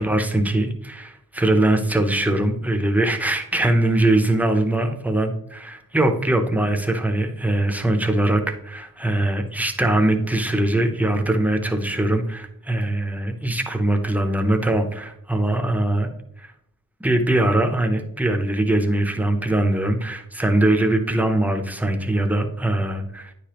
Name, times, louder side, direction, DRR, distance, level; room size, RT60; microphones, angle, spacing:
voice 1, 0.0-16.1 16.4-16.5 17.0-23.3, right 1 dB, 5° right, 5 dB, 0.5 m, -21 dB
9.4 x 5.0 x 2.9 m, 0.76 s
wide cardioid pair, 165°, 35 cm